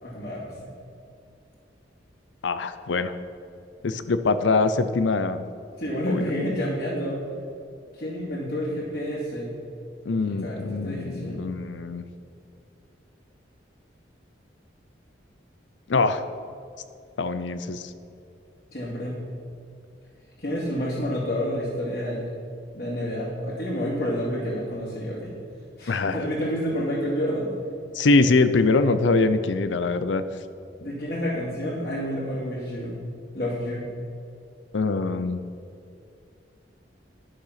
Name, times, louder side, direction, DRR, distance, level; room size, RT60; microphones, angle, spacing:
voice 1, 0.0-0.7 5.8-7.2 7.9-9.5 10.1-11.4 18.7-19.2 20.4-22.3 22.7-25.3 25.8-27.5 30.8-33.0 33.3-33.9, equal, 50° left, -10 dB, 2.4 m, -29 dB
voice 2, 2.4-3.1 3.8-5.4 6.1-6.3 10.1-12.0 15.9-16.2 17.2-17.9 25.9-26.2 27.9-30.2 34.7-35.4, left 3 dB, 75° left, 11 dB, 0.5 m, -23 dB
11.5 x 6.6 x 5.8 m, 2.5 s
head